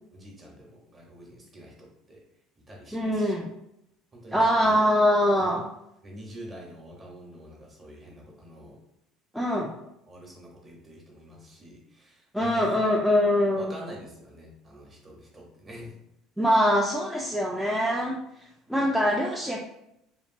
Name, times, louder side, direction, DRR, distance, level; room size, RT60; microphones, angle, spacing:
voice 1, 0.1-2.2 2.6-3.4 4.1-4.7 5.4-5.6 6.0-8.8 10.1-12.8 13.6-15.9, equal, 20° right, -2 dB, 0.8 m, -46 dB
voice 2, 2.9-3.5 4.3-5.7 9.3-9.7 12.3-13.7 16.4-18.2 18.7-19.6, equal, ahead, -3 dB, 0.3 m, -23 dB
2.9 x 2.6 x 2.6 m, 0.81 s
cardioid pair, 140°, 0 cm